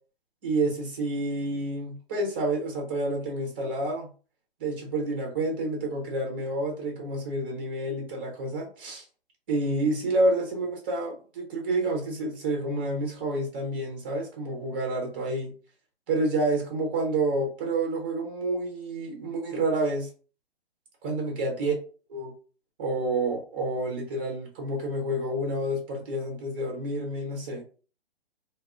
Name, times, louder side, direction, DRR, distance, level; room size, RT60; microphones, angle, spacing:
voice 1, 0.4-4.1 4.6-9.0 9.5-15.5 16.1-20.1 21.0-21.7 22.1-22.3 22.8-27.6, right 2 dB, 10° right, 1 dB, 0.4 m, -29 dB
2.3 x 2.0 x 3.4 m, 0.38 s
figure-of-eight pair, 130°, 33 cm